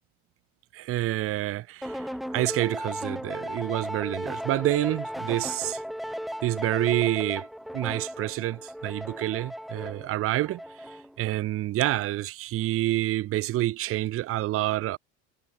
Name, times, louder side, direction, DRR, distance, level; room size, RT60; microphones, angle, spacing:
voice 1, 0.7-5.8 6.4-7.5 7.7-10.6 11.2-15.0, right 15 dB, 40° right, 0.7 m, -28 dB
sound 1, 1.8-11.2, equal, ahead, 0.7 m, -36 dB
supercardioid pair, 120°, 34 cm